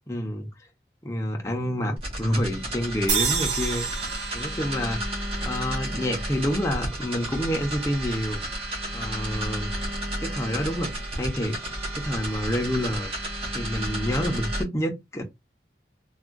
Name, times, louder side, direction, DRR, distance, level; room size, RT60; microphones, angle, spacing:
voice 1, 0.1-0.5 1.0-3.9 4.3-5.0 5.4-8.4 8.9-9.7 10.2-11.6 11.9-13.1 13.5-15.2, equal, 15° left, 0.6 m, -28 dB
sound 1, 2.0-14.6, right 1 dB, 35° right, 1.2 m, -32 dB
sound 2, 3.1-6.4, right 6 dB, 80° right, 0.8 m, -30 dB
3.5 x 2.3 x 2.4 m
head